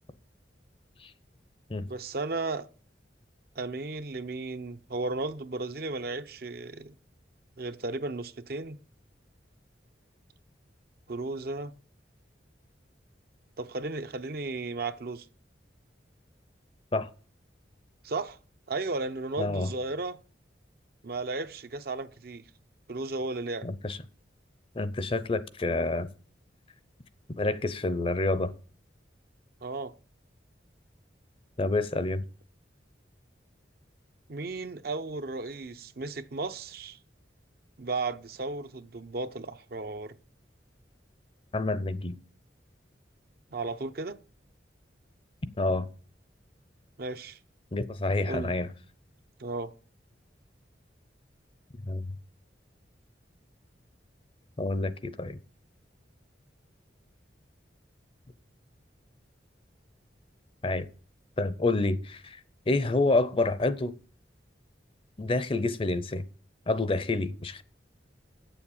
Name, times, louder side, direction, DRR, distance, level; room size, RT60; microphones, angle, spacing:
voice 1, 1.9-2.7 3.6-6.9 7.6-8.8 11.1-11.8 13.6-15.3 18.0-18.4 18.7-20.2 21.0-22.5 22.9-23.7 29.6-29.9 34.3-37.0 37.8-40.2 43.5-44.2 47.0-47.4 48.3-48.5 49.4-49.7, right 3 dB, 55° right, 0.6 m, -34 dB
voice 2, 19.4-19.7 23.6-24.0 24.8-26.1 27.4-28.5 31.6-32.2 41.5-42.1 45.6-45.9 47.7-48.7 51.9-52.1 54.6-55.4 60.6-60.9 61.4-62.4 62.7-63.9 65.2-66.2 66.7-67.6, left 2 dB, 30° left, 0.6 m, -28 dB
8.2 x 7.1 x 7.2 m
head